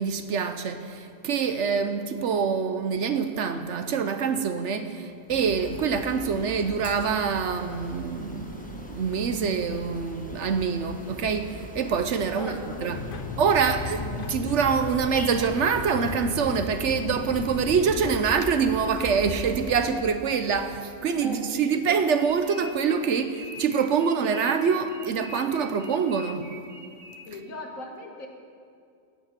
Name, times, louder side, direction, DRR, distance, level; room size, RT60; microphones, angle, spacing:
voice 1, 0.0-13.0 13.4-26.5, right 6 dB, 65° right, 1.0 m, -25 dB
sound 1, 5.3-20.0, left 1 dB, 5° left, 1.0 m, -41 dB
voice 2, 12.3-13.4 21.2-21.8 27.3-28.3, left 2 dB, 75° left, 2.0 m, -39 dB
sound 2, 12.9-18.2, left 6 dB, 50° left, 0.8 m, -36 dB
sound 3, 22.2-27.5, equal, 80° right, 2.0 m, -44 dB
15.0 x 9.5 x 5.9 m
omnidirectional pair, 1.4 m